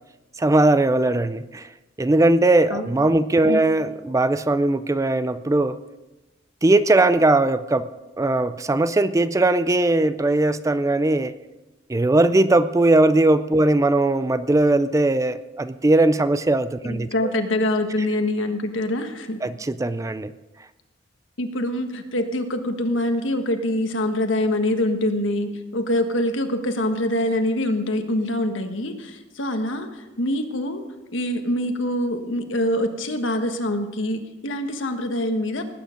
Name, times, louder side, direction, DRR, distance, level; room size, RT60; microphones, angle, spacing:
voice 1, 0.4-1.7 2.0-5.8 6.6-7.9 8.2-11.3 11.9-17.3 19.4-20.3, right 2 dB, 15° right, 13 dB, 0.4 m, -19 dB
voice 2, 16.8-19.4 21.4-30.8 31.1-35.6, left 1 dB, 75° left, 6 dB, 1.5 m, -25 dB
19.0 x 9.2 x 5.2 m, 1.1 s
head